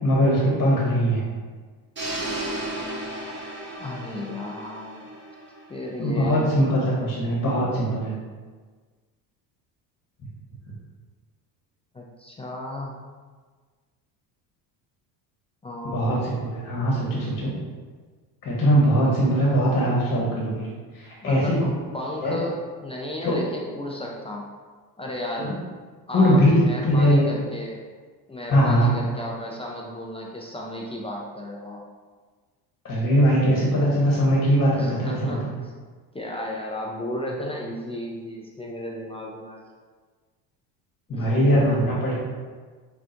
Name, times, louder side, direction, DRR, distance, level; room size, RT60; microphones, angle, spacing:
voice 1, 0.0-1.2 6.0-8.1 15.8-17.5 18.4-20.7 20.9-21.7 22.2-22.4 23.2-23.3 26.1-27.2 28.5-28.9 32.8-35.4 41.1-42.1, equal, 30° left, -5 dB, 1.2 m, -21 dB
sound 1, 2.0-6.0, right 1 dB, 25° right, 1.0 m, -34 dB
voice 2, 3.8-5.0 5.7-6.6 11.9-13.0 15.6-16.1 21.2-24.4 25.0-25.6 26.1-27.8 28.3-31.8 34.7-35.5 36.1-39.7 41.1-41.7, left 1 dB, 15° left, -2 dB, 0.3 m, -34 dB
5.5 x 2.4 x 2.5 m, 1.5 s
supercardioid pair, 75°, 48 cm